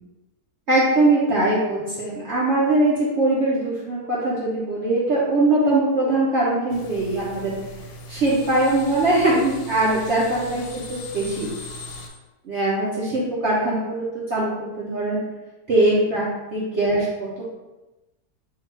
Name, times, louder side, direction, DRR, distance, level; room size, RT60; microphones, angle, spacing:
voice 1, 0.7-7.5 8.1-11.5 12.4-15.2 15.7-16.2 16.5-17.4, right 2 dB, 55° right, -7 dB, 1.0 m, -21 dB
sound 1, 6.7-12.1, left 1 dB, 85° left, 1.1 m, -39 dB
4.0 x 2.4 x 4.2 m, 1.1 s
omnidirectional pair, 1.6 m